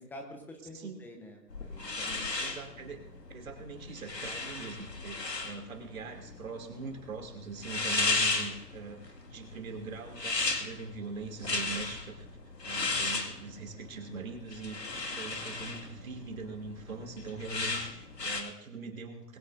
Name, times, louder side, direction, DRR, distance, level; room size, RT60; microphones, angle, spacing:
voice 1, 0.0-2.3 7.7-7.8, left 1 dB, 5° left, 3 dB, 1.0 m, -48 dB
sound 1, 1.5-18.4, left 3 dB, 80° left, 2.2 m, -35 dB
voice 2, 2.4-3.1 3.3-12.3 12.6-19.4, right 4 dB, 55° right, 3 dB, 2.9 m, -42 dB
21.5 x 16.0 x 2.6 m, 0.84 s
figure-of-eight pair, 135°, 49 cm